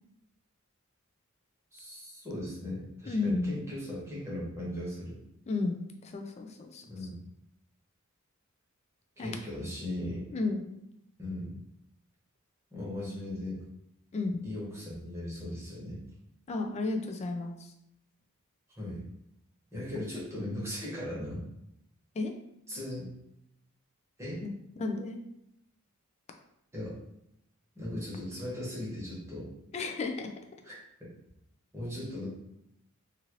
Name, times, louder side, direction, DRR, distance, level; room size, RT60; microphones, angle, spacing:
voice 1, 1.7-5.2 6.9-7.2 9.2-10.3 11.2-11.6 12.7-13.6 14.4-16.0 18.8-19.0 19.7-21.4 22.7-23.1 24.2-24.4 26.7-26.9 27.7-29.5 30.6-30.7 31.0-31.1 31.7-32.3, left 1 dB, 15° right, -7 dB, 1.1 m, -38 dB
voice 2, 3.1-3.6 5.5-6.8 9.2-9.4 10.3-10.7 14.1-14.4 16.5-17.7 22.2-22.3 24.4-25.2 29.7-30.3, left 3 dB, 30° left, 4 dB, 0.3 m, -33 dB
2.7 x 2.5 x 3.0 m, 0.79 s
head